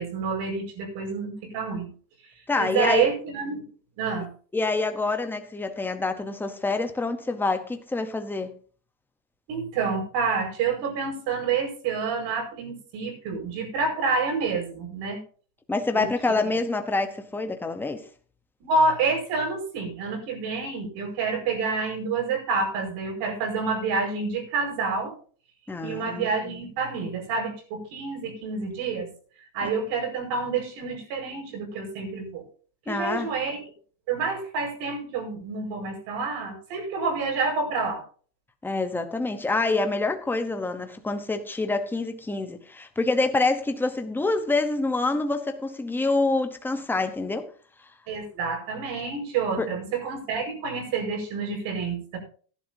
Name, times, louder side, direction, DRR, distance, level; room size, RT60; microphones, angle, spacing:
voice 1, 0.0-1.9 2.6-3.6 4.0-4.3 9.5-15.2 15.9-16.1 16.4-16.5 18.6-25.1 25.8-29.1 29.5-32.4 32.9-33.6 34.1-38.0 48.1-52.2, right 4 dB, 50° right, 5.2 m, -28 dB
voice 2, 2.5-3.1 4.5-8.5 15.7-18.0 25.7-26.6 29.6-29.7 32.9-33.3 38.6-47.5 49.6-49.7, left 3 dB, 5° left, 0.8 m, -26 dB
16.5 x 11.5 x 2.7 m
supercardioid pair, 155°, 50 cm